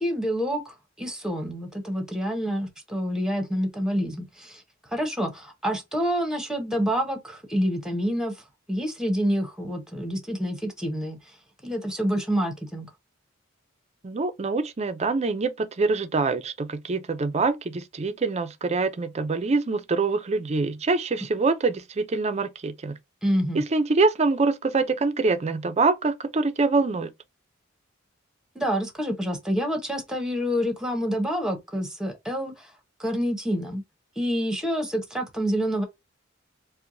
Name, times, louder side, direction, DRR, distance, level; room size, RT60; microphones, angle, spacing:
voice 1, 0.0-4.6 4.9-11.2 11.6-12.9 23.2-23.6 28.5-32.7 33.0-33.8 34.2-35.8, equal, 5° right, 0.9 m, -27 dB
voice 2, 14.0-23.0 23.5-27.1, right 3 dB, 30° right, 0.5 m, -25 dB
4.5 x 2.2 x 2.6 m
head